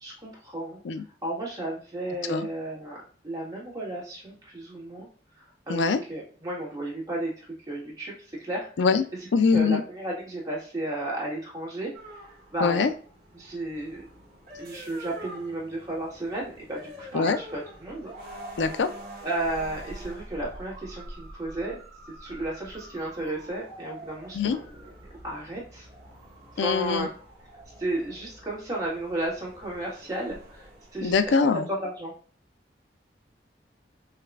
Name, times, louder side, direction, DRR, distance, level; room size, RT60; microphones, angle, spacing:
voice 1, 0.0-0.8 1.2-3.0 3.2-5.1 5.7-5.8 6.1-8.9 9.5-11.9 12.3-12.9 13.3-14.0 14.6-18.3 19.2-21.8 22.2-24.9 25.2-25.9 26.5-27.1 27.8-31.1 31.7-32.1, right 1 dB, 20° right, -5 dB, 1.5 m, -33 dB
voice 2, 9.3-9.8 12.6-12.9 17.1-17.4 18.6-18.9 24.3-24.6 26.6-27.1 31.0-31.7, left 5 dB, 80° left, 11 dB, 0.4 m, -23 dB
sound 1, 11.9-31.3, right 1 dB, 50° right, 1.7 m, -46 dB
6.4 x 2.3 x 2.4 m, 0.43 s
head